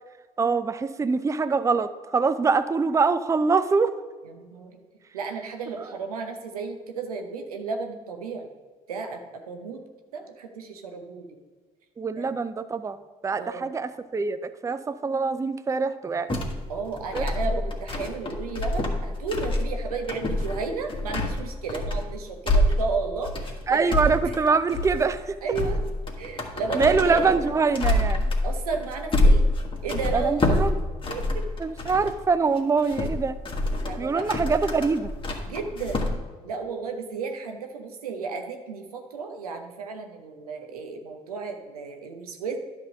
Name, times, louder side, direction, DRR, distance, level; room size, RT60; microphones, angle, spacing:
voice 1, 0.4-3.9 5.8-5.9 12.0-13.0 13.2-16.4 17.1-17.3 17.5-17.6 23.7-25.3 26.7-28.3 30.1-30.8 31.6-33.4 34.0-35.1, right 4 dB, 15° right, 12 dB, 0.5 m, -24 dB
voice 2, 4.2-4.8 5.1-8.5 8.9-9.2 9.5-9.8 10.1-11.3 12.2-12.3 13.4-13.7 16.7-23.9 25.4-25.8 26.2-27.3 28.4-29.5 29.8-30.6 31.1-31.4 33.8-34.2 34.7-34.9 35.4-36.0 36.4-42.6, right 4 dB, 90° right, 5 dB, 0.8 m, -33 dB
sound 1, 16.3-32.2 32.6-36.1, left 1 dB, 25° left, 1.6 m, -26 dB
11.0 x 3.6 x 6.3 m, 1.4 s
hypercardioid pair, 55°, 19 cm